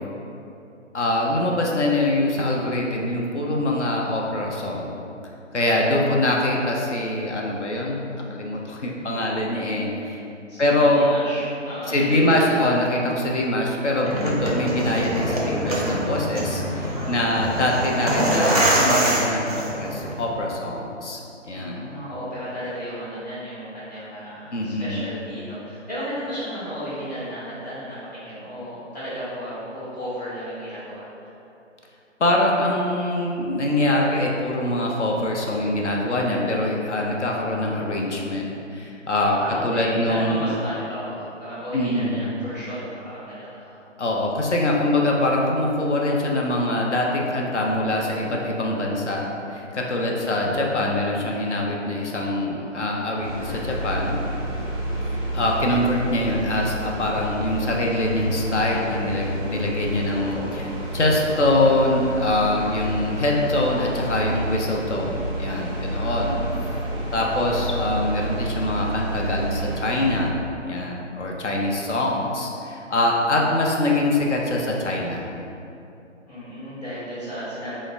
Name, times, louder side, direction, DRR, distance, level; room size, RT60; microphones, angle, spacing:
voice 1, 0.9-5.0 5.5-10.2 10.6-11.0 11.9-21.2 21.5-21.8 24.5-25.1 32.2-40.5 41.7-42.3 44.0-54.2 55.3-60.7 60.9-66.3 67.1-70.3 70.6-75.2, left 1 dB, 65° left, -1 dB, 0.6 m, -23 dB
voice 2, 10.5-12.4 21.5-31.1 36.4-36.8 39.4-43.8 50.2-50.8 60.1-60.8 66.2-66.8 76.2-77.8, equal, 35° left, -11 dB, 1.3 m, -34 dB
sound 1, 14.0-20.1, right 1 dB, 30° right, 0.4 m, -24 dB
sound 2, 53.2-70.2, right 1 dB, 5° left, 0.9 m, -29 dB
6.3 x 2.1 x 2.4 m, 2.7 s
figure-of-eight pair, 145°, 37 cm